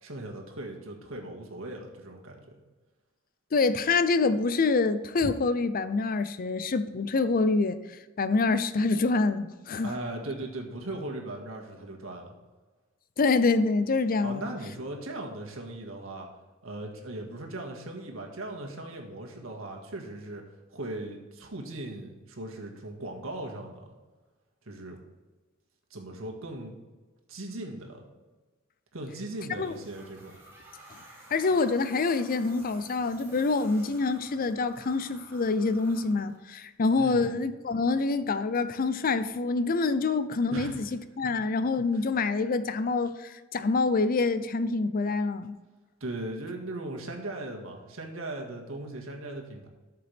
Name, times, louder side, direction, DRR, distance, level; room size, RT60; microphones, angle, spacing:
voice 1, 0.0-2.4 9.8-12.3 14.2-16.3 16.6-20.4 20.7-23.9 24.7-25.0 25.9-26.8 27.3-28.1 28.9-30.4 37.0-37.4 40.5-40.9 41.9-42.0 46.0-49.7, right 2 dB, 80° right, 1.9 m, -38 dB
voice 2, 3.5-9.9 13.2-14.5 29.6-29.7 31.3-40.9 41.2-45.6, left 3 dB, 45° left, 0.5 m, -26 dB
sound 1, 29.1-36.7, right 1 dB, 15° right, 2.6 m, -53 dB
13.0 x 6.7 x 3.5 m
head